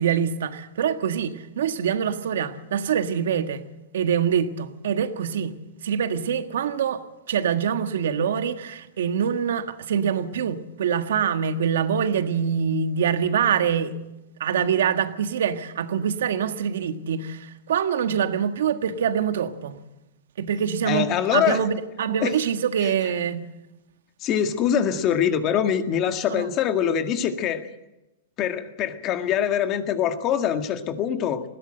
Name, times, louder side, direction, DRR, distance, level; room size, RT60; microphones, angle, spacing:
voice 1, 0.0-3.6 3.9-5.5 5.8-14.0 14.4-19.8 20.4-23.4 26.3-26.5, right 8 dB, 80° right, 1.6 m, -25 dB
voice 2, 20.9-21.6 22.2-22.4 24.2-27.7 28.4-31.4, left 9 dB, 35° left, 1.8 m, -24 dB
20.5 x 16.5 x 7.8 m
hypercardioid pair, 140°, 0 cm